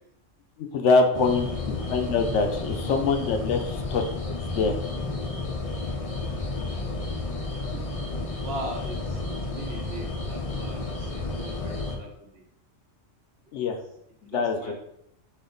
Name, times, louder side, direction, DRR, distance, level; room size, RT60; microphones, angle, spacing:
voice 1, 0.6-4.8 13.5-13.8 14.2-14.7, left 4 dB, 75° left, 5 dB, 0.9 m, -25 dB
sound 1, 1.1-12.0, left 3 dB, 45° left, 0.5 m, -32 dB
voice 2, 6.4-6.8 7.7-8.1 8.4-12.5 13.6-13.7 14.3-14.7, right 1 dB, 55° right, 1 dB, 1.0 m, -40 dB
4.2 x 2.9 x 3.8 m, 0.76 s
omnidirectional pair, 1.3 m